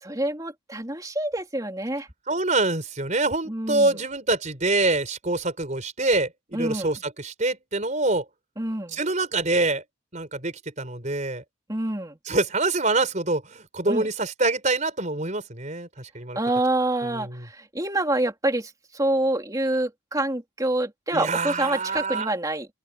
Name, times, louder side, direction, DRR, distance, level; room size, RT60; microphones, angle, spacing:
voice 1, 0.0-2.1 3.5-4.0 6.5-7.0 8.6-9.0 11.7-12.2 13.9-14.1 16.4-22.7, right 1 dB, 15° right, 3.6 m, -27 dB
voice 2, 2.3-8.2 8.9-9.8 10.1-11.4 12.3-16.4 17.0-17.4 21.1-22.3, right 2 dB, 35° right, 4.6 m, -25 dB
open air
head